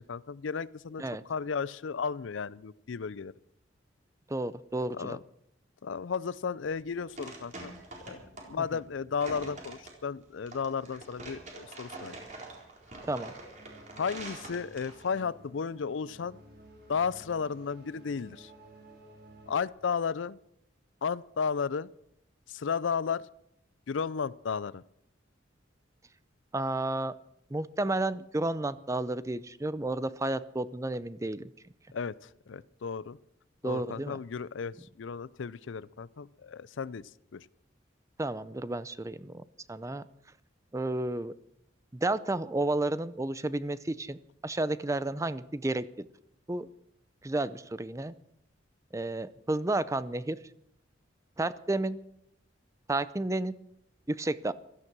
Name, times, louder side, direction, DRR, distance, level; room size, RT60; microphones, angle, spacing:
voice 1, 0.1-3.3 4.9-5.2 5.8-7.7 8.1-8.2 8.5-12.2 14.0-16.4 16.9-18.5 19.5-20.4 21.0-21.9 22.5-23.3 23.9-24.8 31.9-33.2 33.6-37.5, left 6 dB, 75° left, 20 dB, 0.5 m, -34 dB
voice 2, 4.3-5.2 13.1-13.3 26.5-27.1 27.5-31.4 33.6-34.2 38.2-39.4 39.7-40.0 40.7-41.3 41.9-44.2 44.4-46.1 46.5-46.7 47.2-48.1 48.9-50.4 51.4-52.0 52.9-53.6 54.1-54.5, right 2 dB, 15° right, 16 dB, 0.5 m, -31 dB
sound 1, 6.6-15.2, right 2 dB, 40° right, 4.1 m, -45 dB
sound 2, 13.6-19.7, equal, 55° right, 4.5 m, -53 dB
16.0 x 13.5 x 6.1 m, 0.77 s
head